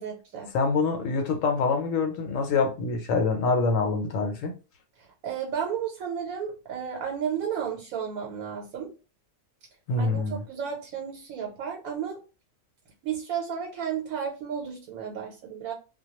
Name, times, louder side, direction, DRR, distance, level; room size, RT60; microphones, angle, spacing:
voice 1, 0.0-0.5 5.0-8.9 10.0-12.2 13.0-15.7, right 7 dB, 85° right, 1.1 m, -33 dB
voice 2, 0.5-4.5 9.9-10.4, left 4 dB, 75° left, 1.0 m, -25 dB
2.2 x 2.2 x 2.9 m
omnidirectional pair, 1.4 m